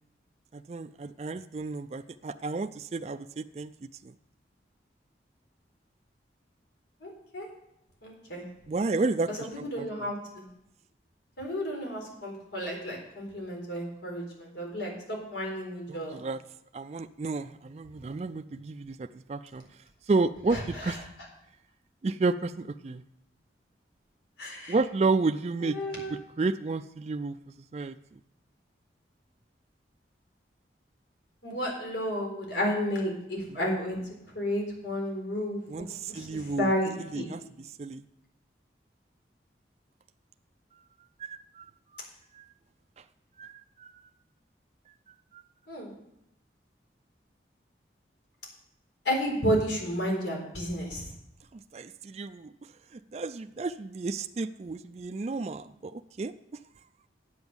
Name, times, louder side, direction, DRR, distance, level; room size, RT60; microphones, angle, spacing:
voice 1, 0.5-3.7 4.0-4.1 8.7-10.1 15.9-16.4 16.7-19.6 20.1-21.0 22.0-23.0 24.7-25.8 26.1-27.4 27.7-28.0 35.7-36.7 37.0-37.4 37.8-38.0 41.2-41.7 41.9-42.0 42.3-42.5 43.4-44.1 45.3-45.4 51.5-52.5 52.9-56.3, right 3 dB, 35° right, 9 dB, 0.3 m, -31 dB
voice 2, 7.0-7.5 8.0-8.4 9.3-10.4 11.4-16.2 20.5-20.9 24.4-24.8 25.6-26.1 31.4-34.0 34.3-37.3 45.7-45.9 49.0-51.1, equal, 85° left, -1 dB, 4.1 m, -32 dB
9.4 x 8.0 x 7.1 m, 0.81 s
head